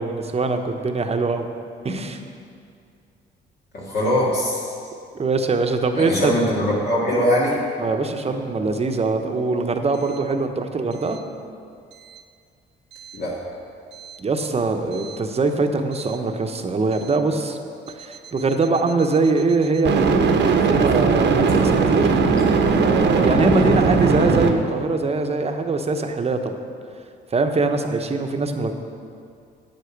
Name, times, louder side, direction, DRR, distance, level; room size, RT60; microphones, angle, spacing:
voice 1, 0.0-1.5 1.8-2.2 5.1-6.3 7.8-11.2 14.2-17.6 18.0-20.3 20.7-22.1 22.8-26.5 27.3-28.7, right 3 dB, 30° right, 5 dB, 0.9 m, -22 dB
voice 2, 3.7-4.7 6.0-7.6 13.1-13.4, equal, 55° left, -6 dB, 2.1 m, -21 dB
sound 1, 15.0-15.1 19.9-24.5, right 4 dB, 65° right, 1.0 m, -18 dB
8.9 x 8.3 x 6.0 m, 2.3 s
cardioid pair, 90°, 20 cm